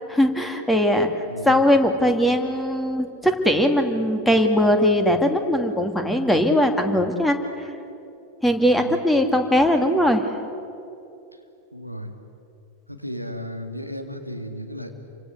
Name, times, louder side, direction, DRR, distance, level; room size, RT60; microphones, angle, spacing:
voice 1, 0.1-1.1 1.4-7.4 8.4-10.3, equal, 5° left, 6 dB, 2.5 m, -20 dB
voice 2, 1.3-1.6 8.7-9.0 11.7-12.1 12.9-14.9, equal, 90° left, 5 dB, 2.4 m, -34 dB
29.0 x 25.0 x 8.0 m, 2.7 s
figure-of-eight pair, 90°, 0 cm